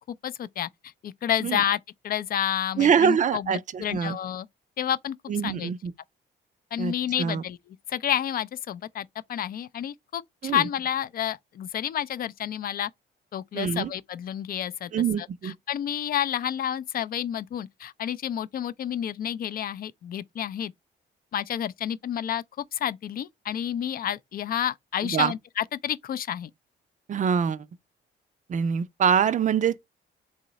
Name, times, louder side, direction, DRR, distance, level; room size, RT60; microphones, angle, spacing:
voice 1, 0.1-4.5 4.8-5.2 5.4-5.7 6.7-7.6 7.9-12.9 13.3-14.9 15.2-20.7 21.3-26.5, left 10 dB, 50° left, 0.4 m, -30 dB
voice 2, 2.8-4.2 5.3-5.9 6.8-6.9 7.2-7.4 10.4-10.7 13.5-13.9 14.9-15.5 25.0-25.3 27.1-27.7 28.5-29.9, right 7 dB, 40° right, 0.4 m, -24 dB
3.7 x 2.0 x 3.9 m
cardioid pair, 90°, 20 cm